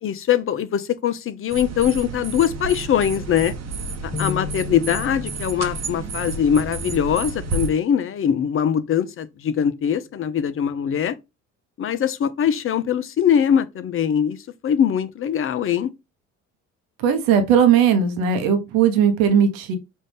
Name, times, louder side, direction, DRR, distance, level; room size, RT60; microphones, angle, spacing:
voice 1, 0.0-3.5 4.0-11.2 11.8-14.4 14.6-15.9, left 9 dB, 35° left, 0.6 m, -22 dB
sound 1, 1.5-7.7, right 4 dB, 40° right, 1.0 m, -31 dB
sound 2, 4.1-7.6, left 8 dB, 15° left, 1.0 m, -35 dB
voice 2, 17.0-19.8, right 7 dB, 65° right, 1.1 m, -18 dB
5.2 x 2.6 x 3.4 m
hypercardioid pair, 60°, 38 cm